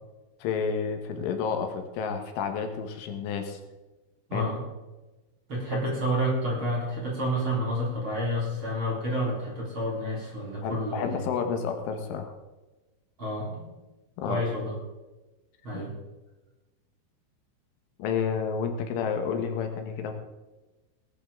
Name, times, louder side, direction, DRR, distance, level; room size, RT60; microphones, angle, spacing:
voice 1, 0.4-3.6 4.3-4.5 5.7-5.8 10.6-12.3 14.2-14.4 15.7-15.8 18.0-20.1, left 6 dB, 75° left, 5 dB, 3.7 m, -30 dB
voice 2, 4.3-4.6 5.5-11.2 13.2-13.7 14.2-14.7 15.6-15.9, equal, 30° right, -4 dB, 3.7 m, -29 dB
19.0 x 11.0 x 3.7 m, 1.1 s
omnidirectional pair, 5.8 m